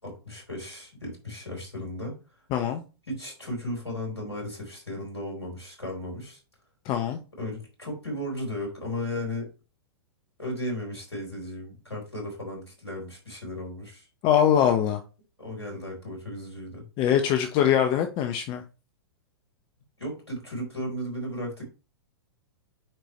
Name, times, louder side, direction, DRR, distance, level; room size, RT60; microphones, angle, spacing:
voice 1, 0.0-2.2 3.1-6.4 7.4-9.5 10.4-14.1 15.4-16.8 20.0-21.6, left 1 dB, 90° left, 4.4 m, -35 dB
voice 2, 2.5-2.8 6.8-7.2 14.2-15.0 17.0-18.6, left 9 dB, 35° left, 0.9 m, -23 dB
9.0 x 4.6 x 3.2 m
figure-of-eight pair, 110°, 14 cm